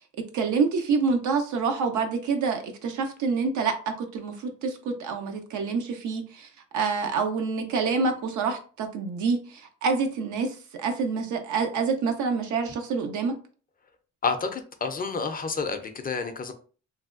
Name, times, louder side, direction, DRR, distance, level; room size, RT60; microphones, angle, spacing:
voice 1, 0.3-6.5 6.7-13.3, right 5 dB, 80° right, 5 dB, 0.6 m, -27 dB
voice 2, 14.2-16.5, left 4 dB, 30° left, 7 dB, 0.4 m, -29 dB
3.2 x 2.2 x 2.4 m, 0.39 s
cardioid pair, 90°, 30 cm